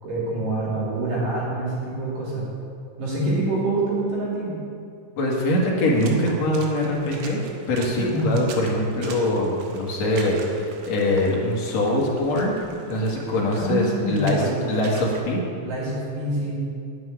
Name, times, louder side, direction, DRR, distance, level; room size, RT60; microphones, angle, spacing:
voice 1, 0.0-2.5 3.0-4.6 7.9-8.3 13.6-14.5 15.6-16.6, right 2 dB, 50° right, -6 dB, 4.2 m, -26 dB
voice 2, 5.2-7.4 7.7-12.5 12.9-15.4, left 1 dB, 50° left, -3 dB, 2.2 m, -23 dB
Water / Splash splatter, 5.9-15.2, right 5 dB, 85° right, 3.7 m, -43 dB
9.9 x 7.6 x 9.5 m, 2.5 s
omnidirectional pair, 5.4 m